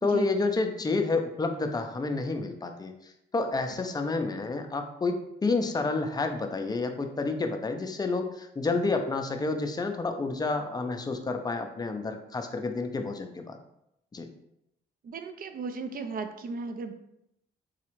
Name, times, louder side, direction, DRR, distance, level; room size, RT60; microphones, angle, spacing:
voice 1, 0.0-5.2 5.4-13.6 14.1-14.3, left 3 dB, 20° left, 5 dB, 0.5 m, -29 dB
voice 2, 15.0-16.9, right 4 dB, 45° right, 8 dB, 0.5 m, -36 dB
4.1 x 2.3 x 3.0 m, 0.81 s
cardioid pair, 90°, 20 cm